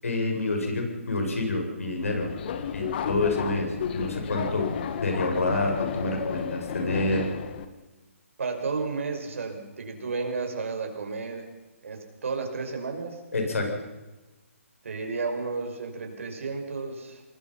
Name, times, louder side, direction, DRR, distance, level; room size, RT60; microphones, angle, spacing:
voice 1, 0.0-2.3 2.7-4.7 5.0-7.3 13.3-13.7, left 2 dB, 75° left, 2 dB, 7.7 m, -28 dB
Subway metro underground, 2.0-7.7, left 8 dB, 45° left, 1.9 m, -33 dB
voice 2, 8.4-11.5 11.8-13.2 14.8-17.2, right 4 dB, 65° right, 3 dB, 6.0 m, -32 dB
28.0 x 20.5 x 5.9 m, 1.1 s
figure-of-eight pair, 140°, 8 cm